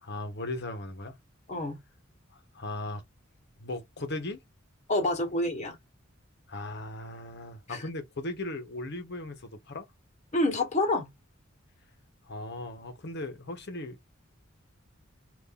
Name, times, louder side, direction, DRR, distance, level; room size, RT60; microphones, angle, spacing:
voice 1, 0.0-1.2 2.3-3.0 3.6-4.4 6.5-9.8 12.3-14.0, left 2 dB, 55° left, 1.0 m, -37 dB
voice 2, 4.9-5.8 7.7-7.8 10.3-11.1, left 2 dB, 35° left, 1.2 m, -27 dB
2.6 x 2.6 x 3.7 m
head